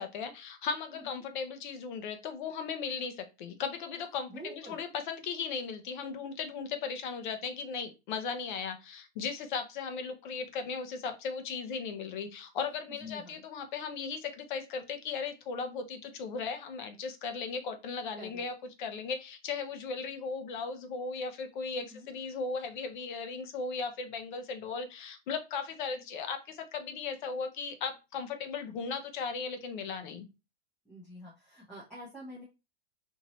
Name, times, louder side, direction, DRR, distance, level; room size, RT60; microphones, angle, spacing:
voice 1, 0.0-18.5 18.8-30.3, left 5 dB, 45° left, 8 dB, 0.8 m, -37 dB
voice 2, 0.9-1.2 4.3-4.8 13.0-13.4 18.2-18.4 21.7-22.1 30.8-32.4, equal, 5° left, -9 dB, 0.8 m, -47 dB
4.4 x 2.7 x 3.0 m, 0.27 s
supercardioid pair, 165°, 33 cm